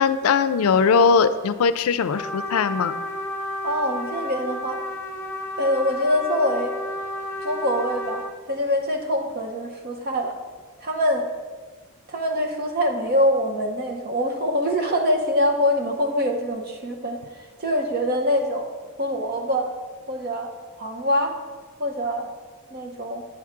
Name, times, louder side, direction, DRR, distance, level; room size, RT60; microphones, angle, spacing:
voice 1, 0.0-2.9, left 5 dB, 85° left, 13 dB, 0.4 m, -20 dB
Trumpet, 2.1-8.4, left 1 dB, 10° left, 0.7 m, -32 dB
voice 2, 3.6-4.8 5.6-6.7 7.4-8.2 8.5-10.3 10.8-11.3 12.1-17.2 17.6-18.7 19.0-19.7 20.1-20.5 20.8-21.3 21.8-22.3 22.7-23.2, equal, 45° right, 3 dB, 0.9 m, -24 dB
9.3 x 3.6 x 5.8 m, 1.4 s
head